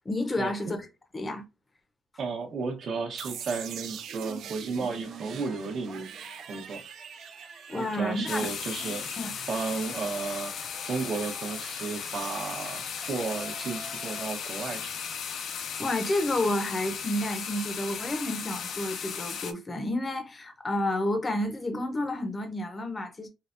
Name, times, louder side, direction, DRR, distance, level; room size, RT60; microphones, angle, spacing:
voice 1, 0.0-0.9 1.1-1.4 7.7-8.5 9.2-9.3 15.8-23.3, left 1 dB, 20° left, 0.7 m, -30 dB
voice 2, 2.2-6.1 6.5-6.8 7.7-9.1 9.5-10.5 10.8-14.9, right 4 dB, 55° right, 1.0 m, -33 dB
sound 1, 3.2-10.0, right 7 dB, 75° right, 0.4 m, -43 dB
Yell, 5.0-14.7, right 2 dB, 35° right, 1.2 m, -49 dB
sound 2, 8.3-19.5, left 7 dB, 60° left, 0.5 m, -36 dB
4.8 x 2.2 x 2.5 m
cardioid pair, 160°, 0 cm